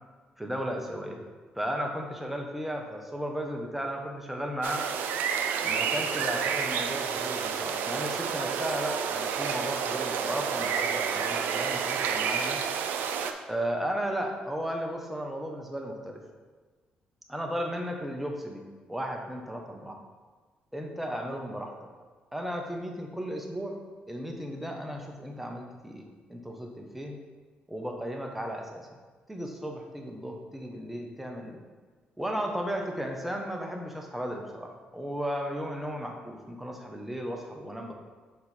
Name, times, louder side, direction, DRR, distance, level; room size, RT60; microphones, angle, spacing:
voice 1, 0.4-1.2 1.5-4.8 5.6-12.6 13.5-16.2 17.3-20.0 20.7-21.7 22.3-23.8 24.1-27.2 27.7-29.0 29.3-31.6 32.2-37.9, equal, 5° right, 1 dB, 1.2 m, -35 dB
sound 1, 4.6-13.3, right 7 dB, 75° right, 0.5 m, -30 dB
6.2 x 4.3 x 4.3 m, 1.4 s
supercardioid pair, 65°, 3 cm